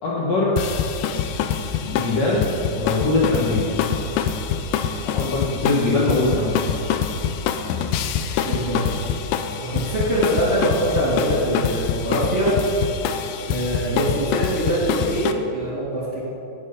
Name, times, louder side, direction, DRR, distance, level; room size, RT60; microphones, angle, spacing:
voice 1, 0.0-0.6 1.8-3.8 5.0-6.6, left 2 dB, 55° left, -6 dB, 2.0 m, -22 dB
sound 1, 0.6-15.3, left 7 dB, 85° left, 2.6 m, -25 dB
voice 2, 8.4-8.8 9.6-12.5 13.5-16.2, right 1 dB, 20° right, -9 dB, 2.4 m, -23 dB
17.5 x 6.3 x 5.4 m, 2.8 s
omnidirectional pair, 4.5 m